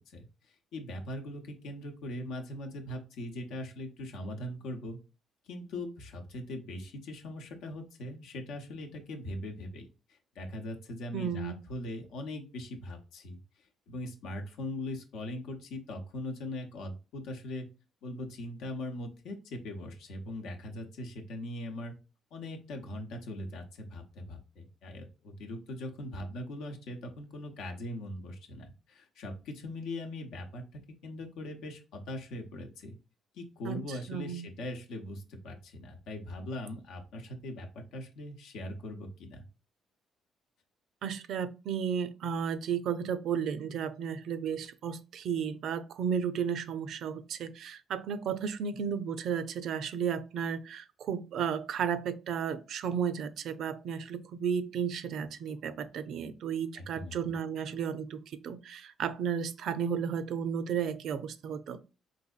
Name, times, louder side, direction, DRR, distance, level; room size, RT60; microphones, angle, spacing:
voice 1, 0.0-5.0 5.4-13.4 13.9-17.7 18.0-21.9 22.3-32.9 33.3-39.4 56.7-57.2, left 1 dB, 85° left, 0.7 m, -41 dB
voice 2, 11.1-11.6 33.6-33.8 34.1-34.5 41.0-61.8, right 7 dB, 70° right, 0.4 m, -33 dB
4.0 x 2.6 x 2.3 m
cardioid pair, 85°, 0 cm